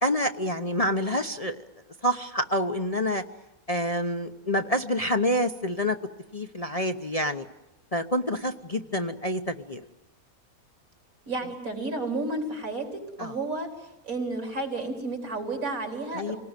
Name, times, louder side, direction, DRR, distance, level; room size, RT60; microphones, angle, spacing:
voice 1, 0.0-1.6 2.0-3.2 3.7-6.0 6.3-7.4 7.9-9.8 13.2-13.3 16.2-16.3, equal, 30° left, 5 dB, 0.9 m, -27 dB
voice 2, 11.3-16.4, right 2 dB, 75° right, 3 dB, 4.7 m, -32 dB
27.5 x 19.0 x 9.1 m, 0.99 s
omnidirectional pair, 1.5 m